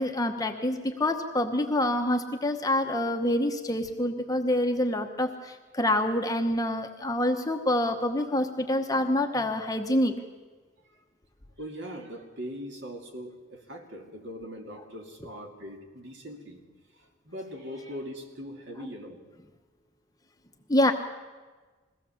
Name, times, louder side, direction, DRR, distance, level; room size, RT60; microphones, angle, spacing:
voice 1, 0.0-10.1 18.8-18.9 20.7-20.9, left 1 dB, 15° left, 5 dB, 1.0 m, -26 dB
voice 2, 11.6-16.6 16.9-19.2, equal, 55° right, 2 dB, 2.5 m, -41 dB
22.0 x 16.5 x 7.1 m, 1.4 s
head